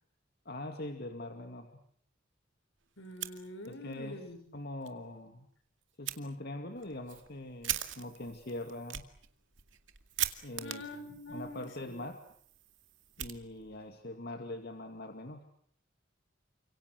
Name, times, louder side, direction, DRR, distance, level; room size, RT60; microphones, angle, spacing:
voice 1, 0.5-1.7 3.7-4.2 4.5-5.5 6.0-9.0 10.4-10.8 11.3-12.2 13.2-15.4, left 1 dB, 55° left, 5 dB, 2.4 m, -42 dB
voice 2, 3.0-4.4 10.6-12.0, left 1 dB, 75° left, 10 dB, 5.5 m, -45 dB
Fire, 3.0-4.0 4.3-4.4 4.8-4.9 6.0-6.2 6.8-13.9, right 12 dB, 75° right, 2.3 m, -41 dB
30.0 x 26.5 x 6.4 m, 0.62 s
head